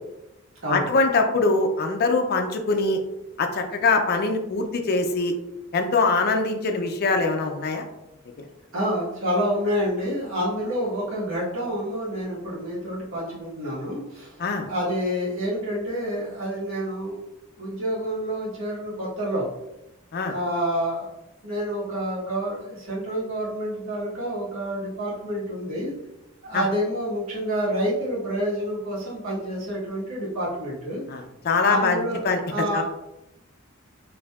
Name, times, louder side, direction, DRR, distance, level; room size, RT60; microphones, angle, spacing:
voice 1, 0.7-3.0 3.4-5.3 5.7-7.8 14.4-14.7 20.1-20.3 26.5-26.6 31.1-32.4 32.7-32.8, left 3 dB, 50° left, 4 dB, 0.4 m, -23 dB
voice 2, 8.7-14.3 14.6-17.2 17.6-19.5 20.2-21.1 21.4-25.9 26.4-31.0 31.7-32.8, equal, 70° right, -8 dB, 1.3 m, -28 dB
4.4 x 2.7 x 2.3 m, 0.91 s
head